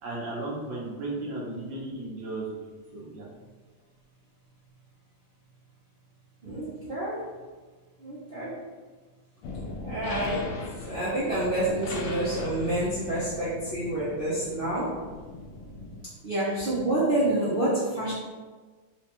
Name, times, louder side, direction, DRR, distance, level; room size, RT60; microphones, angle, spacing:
voice 1, 0.0-2.5 2.9-3.3, right 2 dB, 90° right, -5 dB, 1.7 m, -35 dB
voice 2, 6.4-7.3 8.0-8.5 9.8-10.5 10.9-15.0 16.2-18.1, right 1 dB, 60° right, -10 dB, 0.5 m, -28 dB
sound 1, 9.4-16.1, left 2 dB, 70° left, 1.0 m, -39 dB
4.4 x 2.2 x 2.9 m, 1.4 s
omnidirectional pair, 2.0 m